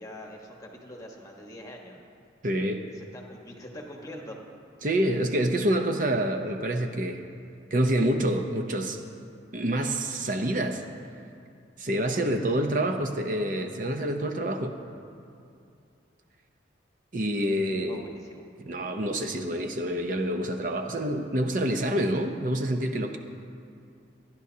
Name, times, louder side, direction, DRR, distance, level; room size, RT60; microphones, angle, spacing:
voice 1, 0.0-2.0 2.9-4.4 12.2-12.4 17.8-18.4, left 1 dB, 20° left, 0 dB, 1.3 m, -44 dB
voice 2, 2.4-2.8 4.8-7.2 7.7-9.0 9.5-10.8 11.8-14.7 17.1-18.1 18.6-23.2, right 1 dB, 45° right, 5 dB, 0.7 m, -27 dB
25.5 x 10.5 x 2.8 m, 2.4 s
head